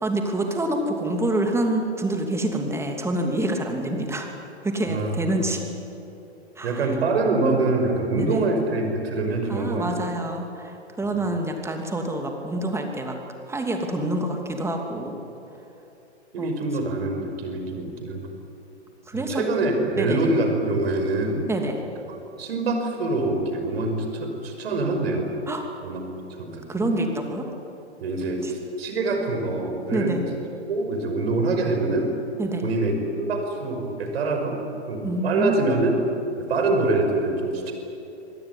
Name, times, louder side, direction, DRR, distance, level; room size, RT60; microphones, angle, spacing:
voice 1, 0.0-4.3 4.6-5.6 6.6-6.9 8.2-8.5 9.5-13.2 13.5-15.2 16.4-16.5 19.1-19.4 20.0-20.2 21.5-21.8 25.5-25.7 26.7-27.5 28.4-28.5 29.9-30.3 32.4-32.7 35.0-35.6, right 1 dB, 10° right, 3 dB, 2.8 m, -27 dB
voice 2, 6.6-10.1 11.0-11.1 16.3-18.3 19.1-21.4 22.1-25.3 25.8-26.0 26.4-26.9 28.0-30.2 30.7-32.1 32.6-34.6 34.9-36.0 36.4-37.7, right 2 dB, 60° right, 4 dB, 5.6 m, -25 dB
26.0 x 18.5 x 9.9 m, 2.9 s
figure-of-eight pair, 115°, 34 cm